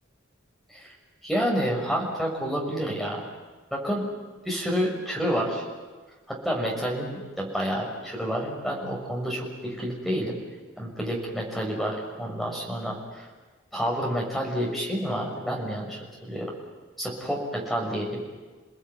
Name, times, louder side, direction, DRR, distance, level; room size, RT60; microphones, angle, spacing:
voice 1, 1.2-3.3 3.7-4.0 4.4-5.6 6.3-10.4 10.8-13.3 13.7-16.5 17.0-18.2, equal, ahead, -2 dB, 6.5 m, -29 dB
29.5 x 19.5 x 9.6 m, 1.3 s
head